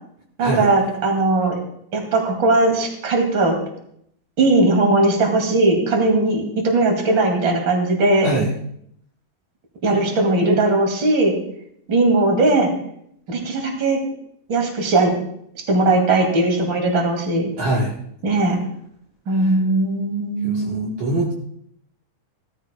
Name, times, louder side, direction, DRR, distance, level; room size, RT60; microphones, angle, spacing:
voice 1, 0.4-1.6 1.9-3.6 4.4-8.3 9.8-11.3 11.9-12.7 13.3-14.0 14.5-15.1 15.7-17.5 18.2-18.6 19.3-20.9, right 2 dB, 35° right, 1 dB, 2.8 m, -18 dB
voice 2, 17.6-18.0 19.4-19.5 20.4-21.3, right 1 dB, 60° right, -4 dB, 2.6 m, -23 dB
18.5 x 13.5 x 2.3 m, 0.71 s
omnidirectional pair, 4.0 m